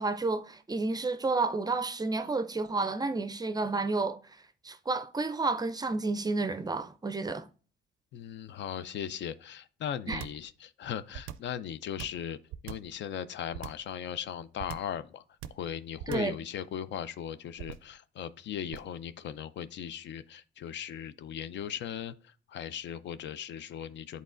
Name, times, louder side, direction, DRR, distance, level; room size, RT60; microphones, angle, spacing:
voice 1, 0.0-4.2 4.6-7.5 10.1-10.2 16.1-16.4, right 3 dB, 20° right, 0.4 m, -31 dB
voice 2, 8.1-12.4 12.6-15.2 15.5-24.2, left 9 dB, 65° left, 0.4 m, -38 dB
sound 1, 10.1-10.5 11.1-11.6 12.0-13.0 13.5-13.9 14.6-15.0 15.4-15.7 16.0-16.4 17.6-18.0 18.7-19.0, right 11 dB, 85° right, 0.4 m, -41 dB
10.5 x 4.1 x 2.5 m
cardioid pair, 90°, 20 cm